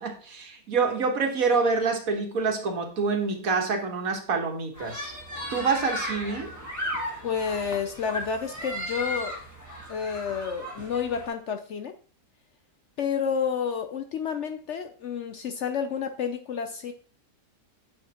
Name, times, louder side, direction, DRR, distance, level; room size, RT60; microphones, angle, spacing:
voice 1, 0.0-5.1 5.5-6.6, right 4 dB, 55° right, 3 dB, 1.7 m, -26 dB
sound 1, 4.7-11.3, equal, 10° left, 1.4 m, -35 dB
voice 2, 7.2-9.4 9.9-11.9 13.0-16.9, left 7 dB, 70° left, 7 dB, 0.7 m, -30 dB
8.9 x 5.9 x 2.9 m, 0.40 s
omnidirectional pair, 1.8 m